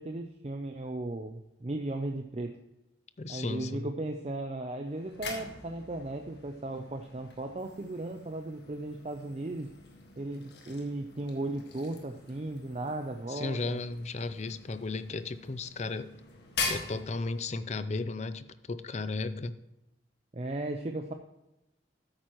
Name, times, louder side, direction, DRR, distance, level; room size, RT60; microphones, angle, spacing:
voice 1, 0.0-2.5 3.3-9.7 10.2-13.8 20.3-21.1, right 2 dB, 35° right, 5 dB, 0.5 m, -36 dB
voice 2, 3.2-3.9 13.3-16.1 16.7-19.6, left 3 dB, 40° left, 13 dB, 0.5 m, -35 dB
sound 1, 4.8-17.8, left 4 dB, 65° left, 1.8 m, -43 dB
13.0 x 9.1 x 3.1 m, 0.93 s
head